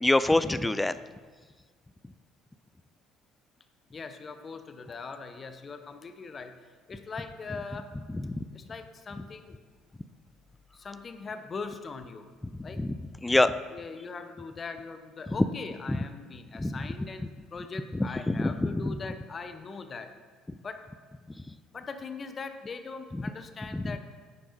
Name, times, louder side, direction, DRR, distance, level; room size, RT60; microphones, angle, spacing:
voice 1, 0.0-1.0 12.8-12.9 13.2-13.5 16.6-16.8 18.3-18.9 23.7-23.8, left 2 dB, 10° left, 14 dB, 0.4 m, -24 dB
voice 2, 3.9-6.5 6.9-7.9 8.5-9.6 10.8-12.3 12.6-12.8 13.7-20.1 20.6-20.8 21.7-24.0, left 4 dB, 35° left, 8 dB, 0.8 m, -41 dB
11.0 x 9.2 x 2.7 m, 1.5 s
figure-of-eight pair, 55°, 0 cm